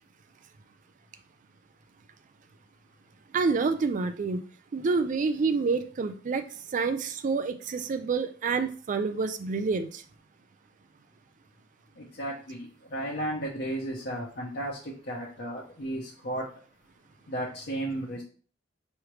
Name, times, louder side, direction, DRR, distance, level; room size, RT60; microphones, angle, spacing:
voice 1, 3.3-4.4 4.7-6.5 6.7-10.0, right 4 dB, 45° right, 0.4 m, -28 dB
voice 2, 12.0-16.5 17.3-18.2, right 1 dB, 60° left, 0.9 m, -34 dB
4.9 x 3.2 x 3.1 m
head